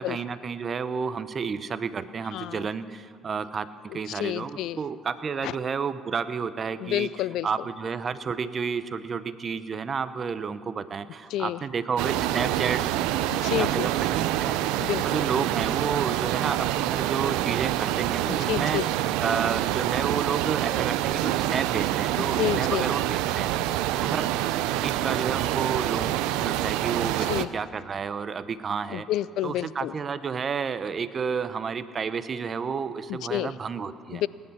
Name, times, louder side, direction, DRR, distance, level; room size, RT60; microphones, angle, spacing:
voice 1, 0.0-7.1 7.4-12.9 13.4-14.5 14.9-18.8 19.2-23.5 24.0-24.3 24.8-29.1 29.4-34.2, right 6 dB, 40° right, 13 dB, 0.9 m, -31 dB
voice 2, 2.3-2.7 4.1-4.8 5.4-5.5 6.8-7.5 11.3-11.6 13.3-13.9 14.8-15.1 18.3-18.9 22.4-22.9 27.3-27.5 28.9-29.9 33.1-33.5 34.1-34.3, left 13 dB, 70° left, 19 dB, 0.4 m, -29 dB
sound 1, 12.0-27.5, right 13 dB, 80° right, 0.5 m, -26 dB
19.0 x 10.5 x 7.2 m, 2.1 s
supercardioid pair, 75°, 0 cm